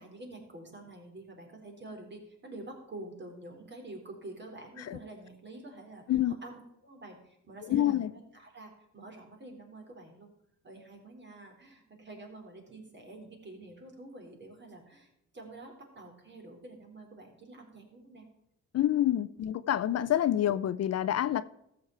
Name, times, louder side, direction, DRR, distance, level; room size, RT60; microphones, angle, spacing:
voice 1, 0.0-10.3 10.6-18.3 19.3-19.5, right 2 dB, 35° right, 3.7 m, -48 dB
voice 2, 7.7-8.1 18.7-21.4, left 12 dB, 55° left, 0.6 m, -27 dB
13.5 x 7.1 x 4.5 m
cardioid pair, 90°, 30 cm